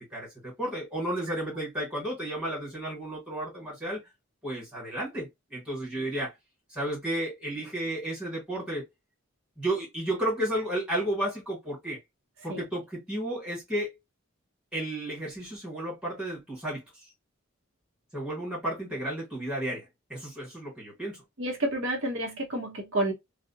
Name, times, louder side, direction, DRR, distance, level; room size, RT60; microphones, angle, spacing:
voice 1, 0.0-4.0 4.4-6.4 6.7-8.8 9.6-12.0 12.4-13.9 14.7-16.8 18.1-19.8 20.1-21.2, right 1 dB, 5° right, 1.3 m, -32 dB
voice 2, 21.4-23.1, right 1 dB, 65° right, 0.9 m, -29 dB
2.5 x 2.1 x 2.6 m
head